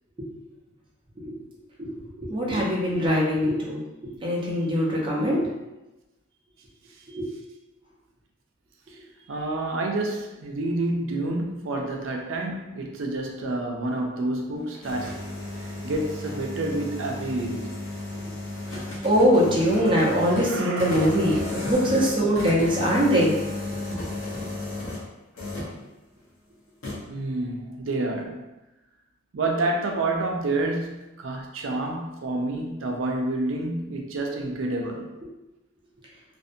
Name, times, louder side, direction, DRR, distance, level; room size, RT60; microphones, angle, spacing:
voice 1, 2.2-3.8 4.2-5.5 7.1-7.3 18.7-23.3, equal, 25° right, -5 dB, 0.6 m, -22 dB
voice 2, 9.3-15.2 15.8-17.7 20.4-21.6 27.1-28.4 29.3-35.0, right 2 dB, 70° right, 1 dB, 0.4 m, -29 dB
sound 1, 14.6-25.1 25.3-25.8 26.8-27.0, left 2 dB, 90° left, 0.7 m, -33 dB
2.6 x 2.1 x 2.5 m, 1.0 s
head